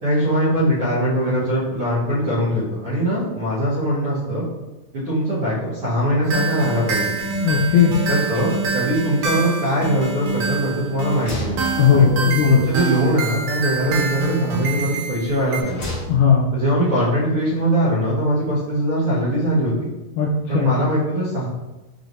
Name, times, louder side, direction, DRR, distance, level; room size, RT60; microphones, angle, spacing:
voice 1, 0.0-4.4 4.9-7.1 8.1-11.6 11.9-15.8 16.5-19.9 20.5-21.5, equal, 60° right, -11 dB, 1.5 m, -21 dB
sound 1, 6.2-15.6, right 5 dB, 80° right, 2.4 m, -26 dB
voice 2, 7.4-7.9 11.8-12.7 16.1-16.5 20.2-20.7, left 6 dB, 80° left, -3 dB, 1.9 m, -16 dB
sound 2, 10.0-10.5 10.8-12.4 13.7-14.6 15.2-16.5, equal, 50° left, 1.6 m, -34 dB
6.2 x 3.2 x 2.6 m, 1.1 s
omnidirectional pair, 4.1 m